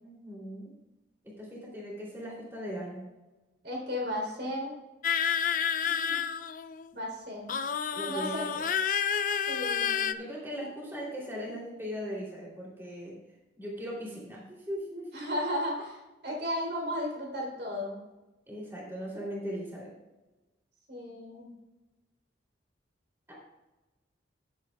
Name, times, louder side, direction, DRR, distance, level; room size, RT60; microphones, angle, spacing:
voice 1, 0.0-0.7 1.4-3.0 5.8-6.2 7.9-8.6 10.2-13.1 13.6-15.3 18.5-19.9 23.3-23.4, equal, 10° right, -5 dB, 3.0 m, -39 dB
voice 2, 3.6-4.7 6.9-7.5 8.1-8.5 9.5-10.2 15.1-18.0 20.9-21.5, equal, 55° right, -1 dB, 3.5 m, -34 dB
sound 1, 5.0-6.9 7.5-10.1, left 7 dB, 45° left, 0.4 m, -29 dB
18.5 x 8.3 x 2.3 m, 1.1 s
head